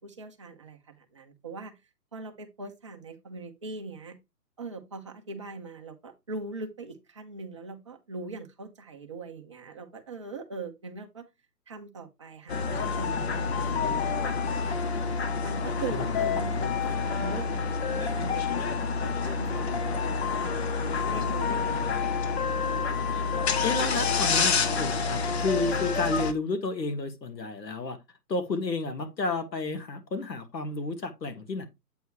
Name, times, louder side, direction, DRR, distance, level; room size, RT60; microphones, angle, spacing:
voice 1, 0.0-1.7 2.1-4.2 4.6-11.3 11.7-15.0 15.4-22.7, right 3 dB, 20° right, 0.5 m, -41 dB
sound 1, 12.5-26.3, left 5 dB, 40° left, 0.9 m, -28 dB
voice 2, 15.9-17.0 23.6-28.0 28.3-31.7, left 3 dB, 85° left, 1.7 m, -31 dB
8.1 x 3.1 x 4.7 m
hypercardioid pair, 145°, 49 cm